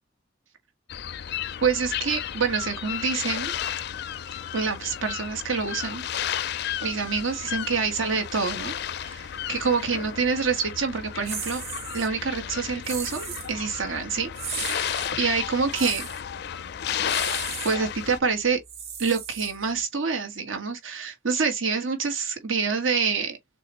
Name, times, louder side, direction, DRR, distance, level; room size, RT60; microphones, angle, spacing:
sound 1, 0.9-18.2, left 9 dB, 55° left, 0.4 m, -33 dB
voice 1, 1.6-3.5 4.5-6.0 6.8-8.7 9.0-11.6 11.9-14.3 14.6-16.1 17.6-18.6 19.0-23.4, right 5 dB, 80° right, 1.5 m, -26 dB
sound 2, 11.3-12.1 12.8-13.5 14.3-15.1 15.7-16.2 17.0-17.8 18.6-19.8, right 7 dB, 50° right, 2.8 m, -36 dB
6.8 x 2.4 x 3.1 m
head